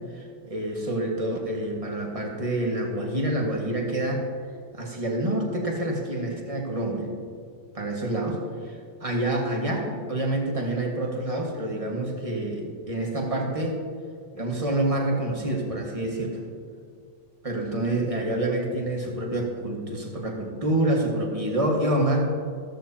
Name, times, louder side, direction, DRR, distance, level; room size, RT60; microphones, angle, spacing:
voice 1, 0.1-4.2 4.7-7.1 7.7-13.8 14.3-16.4 17.4-22.3, right 1 dB, 15° right, -1 dB, 1.5 m, -27 dB
14.5 x 14.0 x 2.9 m, 2.2 s
omnidirectional pair, 2.4 m